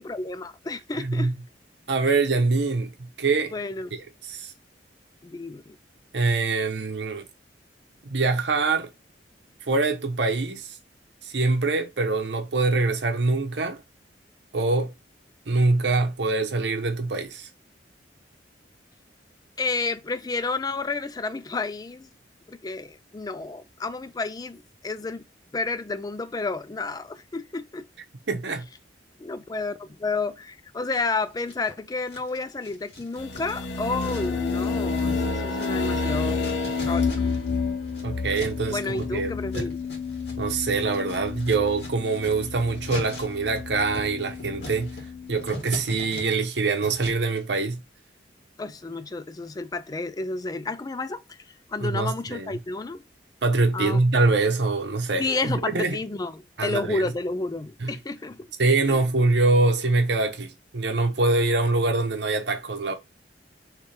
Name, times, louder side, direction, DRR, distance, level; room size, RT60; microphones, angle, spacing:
voice 1, 0.0-1.3 3.5-3.9 5.2-5.8 19.6-22.1 22.5-25.2 25.5-27.9 29.2-36.5 36.8-37.3 38.7-39.8 48.6-51.4 51.7-53.0 53.7-54.0 55.2-58.5 58.9-59.0, left 3 dB, 20° left, 0.3 m, -31 dB
voice 2, 0.9-1.3 1.9-2.9 3.2-3.5 3.9-4.5 6.1-7.3 8.0-8.9 9.7-10.8 11.2-13.8 14.5-14.9 15.5-17.5 28.3-28.6 38.0-39.7 40.4-44.9 45.3-47.8 51.8-52.5 53.4-56.0 56.6-57.1 57.8-57.9 58.6-62.9, right 3 dB, 75° right, 0.8 m, -24 dB
sound 1, 30.9-31.7 32.1-37.6 37.8-47.4, left 1 dB, 65° left, 1.8 m, -42 dB
sound 2, 33.2-45.5, left 4 dB, 90° left, 0.7 m, -30 dB
3.3 x 3.2 x 4.2 m
head